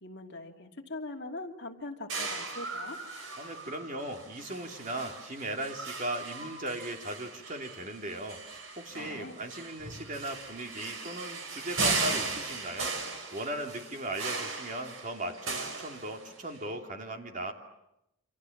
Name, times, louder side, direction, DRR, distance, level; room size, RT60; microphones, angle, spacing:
voice 1, 0.0-3.0 9.1-9.3, left 2 dB, 50° left, 2 dB, 2.7 m, -41 dB
sound 1, 2.1-16.6, right 3 dB, 65° right, 5.0 m, -37 dB
voice 2, 3.4-17.5, right 1 dB, 35° right, 3 dB, 3.0 m, -38 dB
29.0 x 26.5 x 7.3 m, 0.85 s
head